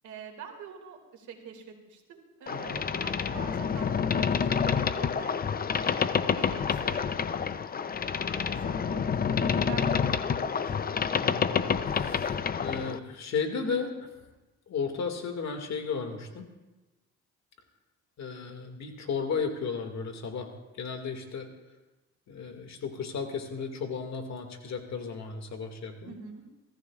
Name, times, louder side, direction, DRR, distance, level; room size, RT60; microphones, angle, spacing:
voice 1, 0.0-5.4 5.8-7.9 8.4-10.8 26.0-26.4, right 6 dB, 75° right, 2 dB, 2.4 m, -46 dB
voice 2, 2.5-2.8 5.8-6.2 9.1-9.4 11.2-14.2 14.7-16.5 18.2-21.5 22.3-26.2, left 5 dB, 65° left, 4 dB, 2.2 m, -35 dB
Boat Water vehicle, 2.5-13.0, left 6 dB, 30° left, 0.6 m, -28 dB
23.5 x 14.5 x 2.5 m, 1.1 s
cardioid pair, 90°, 30 cm